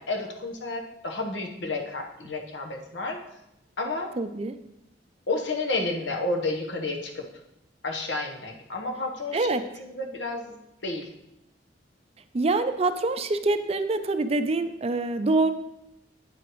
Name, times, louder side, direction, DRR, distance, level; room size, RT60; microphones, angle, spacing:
voice 1, 0.0-3.2 3.8-4.1 5.3-7.3 7.8-9.5 9.8-11.1, left 2 dB, 80° left, 2 dB, 1.1 m, -31 dB
voice 2, 4.2-4.6 9.3-9.6 12.3-15.5, right 2 dB, 35° right, 9 dB, 0.4 m, -25 dB
8.7 x 8.0 x 3.1 m, 0.88 s
head